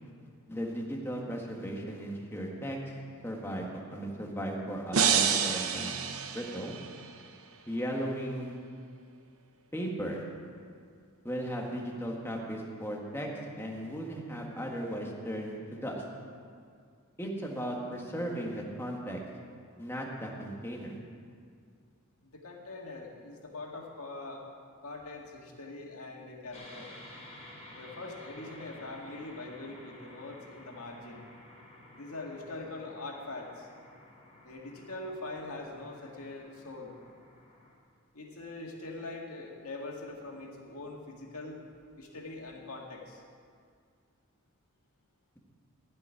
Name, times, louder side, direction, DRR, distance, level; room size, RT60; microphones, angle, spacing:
voice 1, 0.5-2.9 3.2-6.8 7.7-8.6 9.7-10.2 11.2-13.3 13.6-16.0 17.2-19.2 19.8-21.0, equal, 10° left, -1 dB, 1.7 m, -36 dB
sound 1, 4.9-7.1, right 7 dB, 70° right, 0.9 m, -28 dB
voice 2, 22.2-24.4 24.8-26.9 27.7-31.2 31.9-33.7 34.4-36.9 38.1-41.6 42.0-43.2, left 2 dB, 75° left, 0 dB, 2.1 m, -43 dB
sound 2, 26.5-37.7, left 1 dB, 30° left, 3.2 m, -52 dB
16.0 x 5.5 x 9.9 m, 2.2 s
head